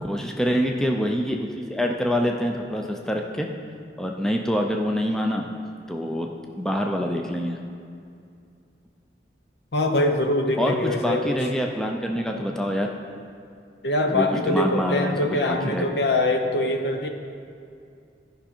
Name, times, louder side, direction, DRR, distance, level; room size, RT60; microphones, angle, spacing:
voice 1, 0.0-3.5 4.0-5.5 5.9-7.6 10.6-12.9 14.1-15.9, equal, 5° left, 1 dB, 0.4 m, -26 dB
voice 2, 9.7-11.4 13.8-17.1, left 1 dB, 70° left, 4 dB, 0.9 m, -23 dB
14.0 x 5.5 x 4.4 m, 2.4 s
head